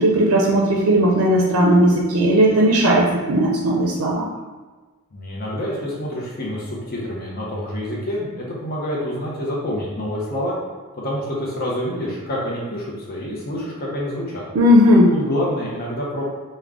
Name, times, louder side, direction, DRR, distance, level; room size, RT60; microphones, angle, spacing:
voice 1, 0.0-4.3 14.5-15.1, equal, 80° right, -2 dB, 0.4 m, -16 dB
voice 2, 5.1-10.5 11.0-14.4 15.1-16.2, equal, 45° left, -4 dB, 0.6 m, -27 dB
3.6 x 2.1 x 3.4 m, 1.3 s
head